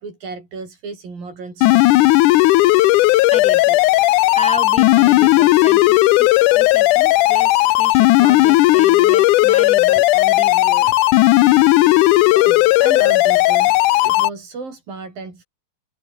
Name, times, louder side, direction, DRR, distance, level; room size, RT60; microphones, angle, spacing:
voice 1, 0.0-2.2 12.3-13.8 14.1-15.4, right 4 dB, 75° right, 9.1 m, -33 dB
sound 1, 1.6-14.3, left 18 dB, 75° left, 2.0 m, -14 dB
voice 2, 3.3-3.8 4.3-10.9, equal, ahead, 3.6 m, -33 dB
omnidirectional pair, 4.1 m